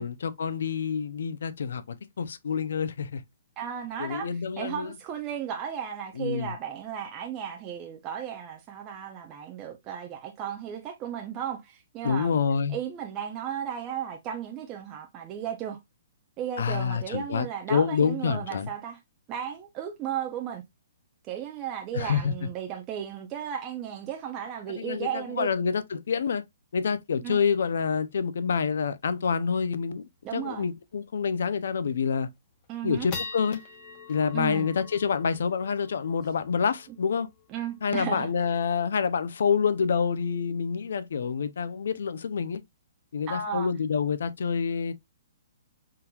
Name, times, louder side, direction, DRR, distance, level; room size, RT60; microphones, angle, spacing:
voice 1, 0.0-3.2 4.0-4.9 6.2-6.5 12.0-12.8 16.6-18.7 21.9-22.3 24.8-26.4 26.7-30.0 30.3-32.3 32.8-33.6 34.1-37.3 37.8-42.6 43.1-44.9, left 6 dB, 70° left, 0.4 m, -27 dB
voice 2, 3.6-4.3 4.6-12.4 12.7-15.8 16.4-19.0 19.3-20.6 21.3-25.5 27.2-27.4 30.2-30.7 32.7-33.1 34.3-34.7 37.5-38.3 43.3-43.7, right 9 dB, 20° right, 0.4 m, -35 dB
sound 1, 30.0-30.1 30.5-30.7 31.2-31.3 31.8-32.2 32.6-39.2, left 5 dB, 30° left, 0.7 m, -44 dB
3.7 x 2.9 x 2.2 m
hypercardioid pair, 165°, 0 cm